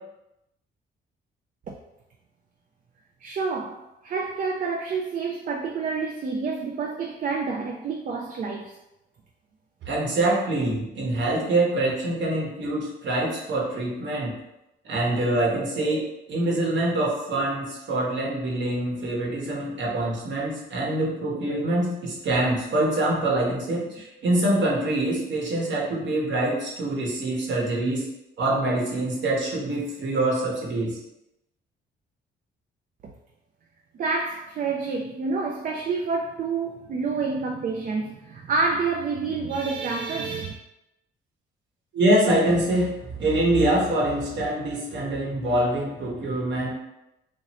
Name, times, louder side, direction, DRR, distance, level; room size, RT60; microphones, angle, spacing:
voice 1, 3.2-8.8 33.9-40.5, right 4 dB, 45° right, 1 dB, 0.4 m, -28 dB
voice 2, 9.9-14.3 14.8-16.0 16.3-28.1 28.4-31.0 41.9-46.7, right 1 dB, 65° right, -3 dB, 1.0 m, -25 dB
3.0 x 2.6 x 2.8 m, 0.90 s
cardioid pair, 90°, 20 cm